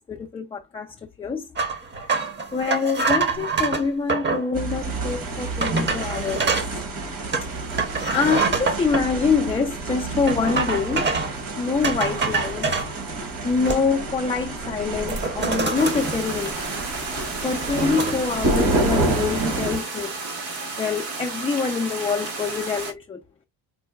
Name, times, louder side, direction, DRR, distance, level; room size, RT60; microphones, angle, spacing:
voice 1, 0.1-1.5 2.5-6.5 8.1-11.1 11.6-12.7 13.4-16.6 17.4-20.2 20.8-23.2, left 5 dB, 15° left, 0.3 m, -25 dB
sound 1, 1.6-4.5 5.1-5.2 5.6-6.7 7.3-9.0 10.3-11.4 11.8-12.9 13.4-14.1 14.4-14.6 14.9-16.8 17.2-18.1, right 4 dB, 30° right, 0.7 m, -26 dB
sound 2, 4.5-19.8, right 2 dB, 55° right, 1.2 m, -29 dB
sound 3, 15.7-22.9, right 3 dB, 80° right, 1.3 m, -33 dB
4.6 x 2.1 x 2.3 m
cardioid pair, 95°, 39 cm